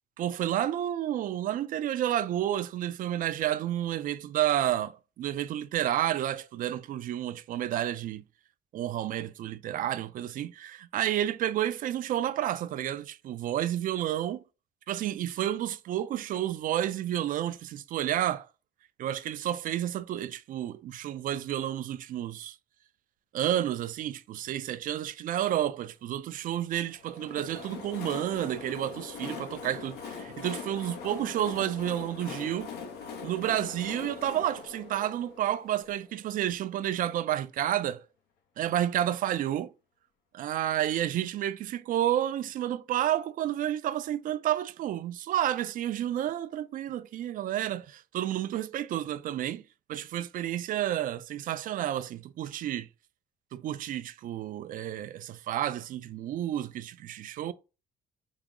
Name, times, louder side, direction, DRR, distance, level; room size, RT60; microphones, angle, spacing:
voice 1, 0.2-8.2 8.7-14.4 14.9-18.5 19.0-22.6 23.3-32.7 33.2-38.0 38.6-39.7 40.3-49.6 49.9-52.9 53.5-57.5, right 12 dB, 55° right, 0.4 m, -30 dB
Train, 26.9-36.5, left 6 dB, 75° left, 0.8 m, -42 dB
4.7 x 2.0 x 3.6 m
cardioid pair, 110°, 17 cm